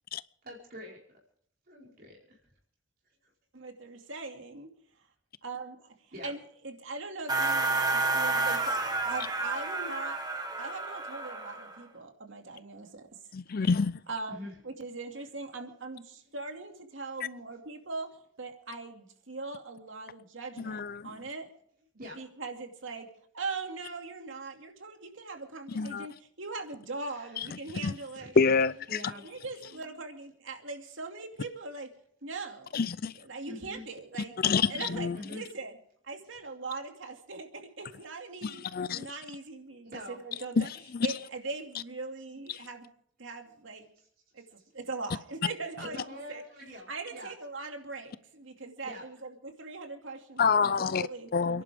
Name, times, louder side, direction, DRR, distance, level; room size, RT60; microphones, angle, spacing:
voice 1, 0.4-1.0 1.7-2.4 6.1-6.3 14.3-14.5 22.0-22.2 27.0-27.4 28.2-28.3 28.9-29.2 33.4-33.8 34.7-35.4 39.8-40.2 44.0-44.1 45.8-47.3 48.8-49.0, left 1 dB, 50° right, 4.7 m, -44 dB
voice 2, 3.5-4.7 5.4-5.9 6.2-10.2 10.6-13.1 13.6-13.7 14.1-21.5 22.2-23.1 23.3-28.4 29.2-31.9 32.2-32.8 33.2-34.3 34.7-35.8 36.0-38.6 38.9-40.7 41.0-42.9 43.2-43.9 44.3-44.4 44.7-46.0 46.3-46.4 46.9-51.6, right 3 dB, 75° right, 2.5 m, -41 dB
sound 1, 7.3-11.8, right 3 dB, 20° right, 1.6 m, -30 dB
voice 3, 13.3-14.0 20.6-21.1 25.7-26.1 27.4-27.5 27.8-27.9 28.4-29.0 32.7-33.1 34.4-35.2 38.4-39.1 40.6-41.1 42.5-42.7 50.4-51.1 51.3-51.6, left 5 dB, 50° left, 0.5 m, -27 dB
29.0 x 11.0 x 3.6 m
head